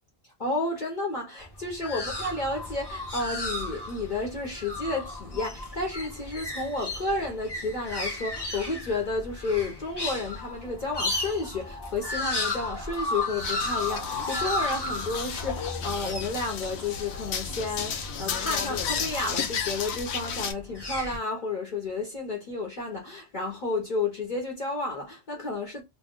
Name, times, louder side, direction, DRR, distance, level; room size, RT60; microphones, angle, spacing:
voice 1, 0.4-25.8, left 3 dB, 45° left, 1.0 m, -31 dB
sound 1, 1.4-19.6 20.5-21.2, left 2 dB, 25° left, 0.7 m, -34 dB
sound 2, 13.4-20.5, left 7 dB, 80° left, 0.9 m, -33 dB
2.3 x 2.2 x 3.7 m
omnidirectional pair, 1.1 m